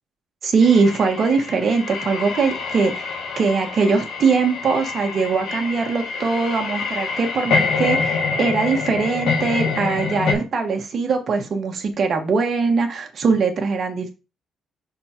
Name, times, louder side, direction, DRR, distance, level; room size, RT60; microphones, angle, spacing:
voice 1, 0.4-14.1, right 4 dB, 35° right, 4 dB, 1.3 m, -21 dB
sound 1, 0.6-10.3, left 4 dB, 60° left, 1.4 m, -26 dB
5.9 x 4.2 x 4.4 m, 0.29 s
cardioid pair, 180°, 0 cm